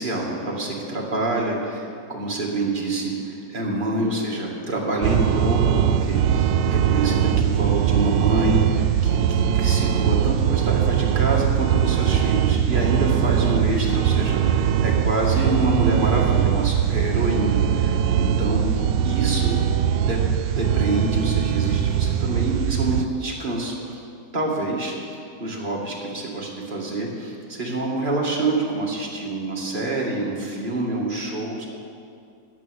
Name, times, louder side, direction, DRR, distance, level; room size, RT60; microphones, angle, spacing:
voice 1, 0.0-18.6 19.0-19.6 20.0-20.2 20.5-24.0 24.3-31.7, right 2 dB, 30° right, -3 dB, 2.2 m, -27 dB
sound 1, 5.0-23.1, right 9 dB, 85° right, 1.2 m, -21 dB
14.5 x 9.4 x 6.4 m, 2.4 s
omnidirectional pair, 1.9 m